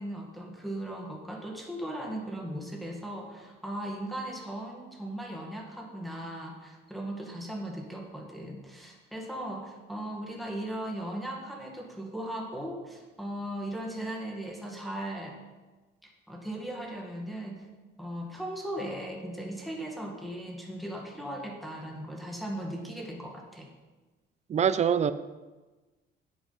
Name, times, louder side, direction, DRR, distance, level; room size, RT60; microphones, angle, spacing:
voice 1, 0.0-15.4 16.0-17.7 18.0-23.7, right 1 dB, ahead, -1 dB, 1.8 m, -38 dB
voice 2, 24.5-25.1, right 8 dB, 35° right, 14 dB, 0.6 m, -24 dB
9.9 x 8.7 x 5.6 m, 1.2 s
cardioid pair, 135°, 19 cm